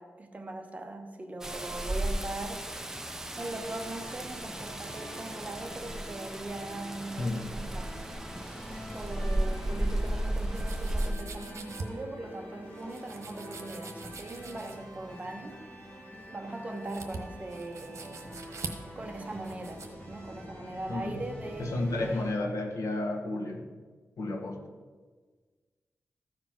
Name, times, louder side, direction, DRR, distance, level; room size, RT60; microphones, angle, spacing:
voice 1, 0.0-2.7 3.4-8.0 8.9-15.6 16.3-18.3 18.9-22.5, right 2 dB, 25° right, 4 dB, 1.0 m, -40 dB
Rain, 1.4-11.1, right 1 dB, 10° right, 0.5 m, -34 dB
sound 1, 3.3-22.3, equal, 25° left, 2.2 m, -46 dB
voice 2, 7.2-7.5 20.9-21.2 21.6-23.7 24.2-24.7, left 2 dB, 85° left, 3 dB, 1.5 m, -32 dB
sound 2, 10.5-19.9, right 4 dB, 65° right, 1.2 m, -44 dB
14.0 x 5.0 x 5.9 m, 1.4 s
wide cardioid pair, 150°, 5 cm